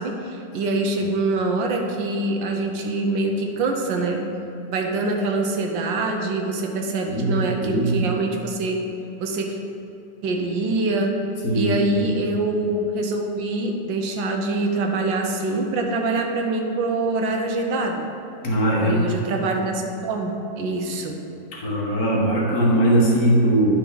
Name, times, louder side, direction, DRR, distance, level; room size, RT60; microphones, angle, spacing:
voice 1, 0.0-4.2 4.7-8.9 9.2-9.6 10.2-11.1 11.5-18.1 18.8-21.2, right 2 dB, 85° right, 3 dB, 1.6 m, -24 dB
voice 2, 7.1-8.0 11.4-12.1 18.4-19.1 21.5-23.7, right 1 dB, 55° left, -3 dB, 1.7 m, -20 dB
10.0 x 6.0 x 3.9 m, 2.8 s
omnidirectional pair, 2.0 m